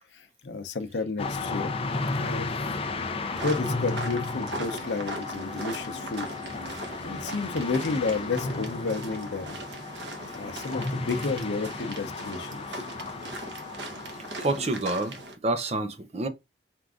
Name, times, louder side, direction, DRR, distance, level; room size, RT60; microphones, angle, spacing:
voice 1, 0.1-1.7 2.1-2.5 3.4-6.3 7.0-9.6 10.3-12.8, left 3 dB, 85° left, 0.7 m, -31 dB
sound 1, 1.2-14.6, left 3 dB, 35° left, 0.5 m, -34 dB
sound 2, 3.3-15.4, right 1 dB, 80° right, 1.1 m, -39 dB
voice 2, 14.4-16.3, right 2 dB, 35° right, 0.6 m, -28 dB
4.5 x 2.5 x 3.6 m
head